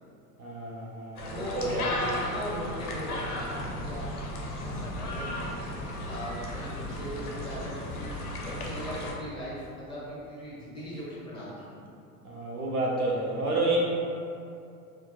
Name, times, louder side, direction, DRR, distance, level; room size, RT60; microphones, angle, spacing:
voice 1, 0.4-1.8 12.2-13.8, right 3 dB, 80° right, -3 dB, 0.6 m, -30 dB
sound 1, 1.2-9.1, left 1 dB, 85° left, 0.5 m, -35 dB
voice 2, 1.3-4.1 4.6-11.7, equal, 10° left, -9 dB, 1.4 m, -39 dB
4.2 x 2.2 x 2.3 m, 2.5 s
figure-of-eight pair, 70°, 44 cm